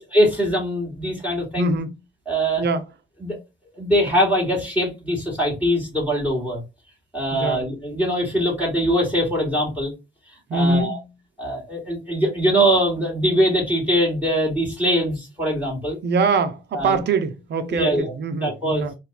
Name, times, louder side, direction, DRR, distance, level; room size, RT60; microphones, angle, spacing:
voice 1, 0.0-1.8 2.3-2.6 3.2-3.4 3.7-6.6 7.1-9.9 10.5-11.0 11.4-16.0 16.7-17.0 17.7-18.1 18.4-18.9, equal, 5° right, 2.7 m, -22 dB
voice 2, 1.6-2.0 2.6-2.8 7.3-7.7 10.5-11.1 16.0-18.9, right 3 dB, 60° right, 0.9 m, -23 dB
4.4 x 2.7 x 3.4 m
cardioid pair, 90°, 20 cm